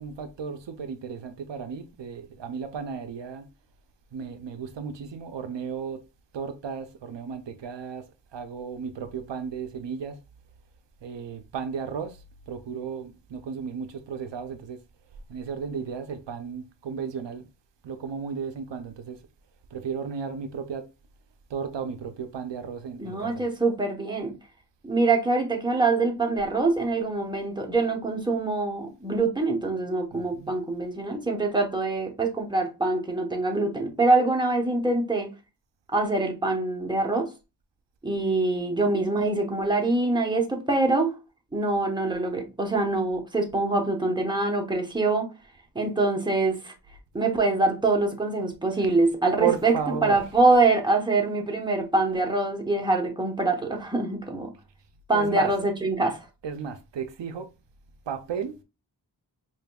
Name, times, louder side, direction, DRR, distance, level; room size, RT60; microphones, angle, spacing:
voice 1, 0.0-3.5 4.1-6.0 6.3-8.0 8.3-10.2 11.0-14.8 15.3-17.5 17.8-19.2 19.7-20.9 21.5-23.4 30.1-30.5 49.4-50.2 55.1-55.5 56.4-57.5 58.1-58.6, right 6 dB, 85° right, 0.5 m, -34 dB
voice 2, 23.0-24.3 24.8-35.3 35.9-37.3 38.0-41.2 41.5-45.3 45.7-46.7 47.1-54.5 55.1-56.3, right 3 dB, 10° right, 1.0 m, -24 dB
5.0 x 2.6 x 2.3 m
wide cardioid pair, 45°, 42 cm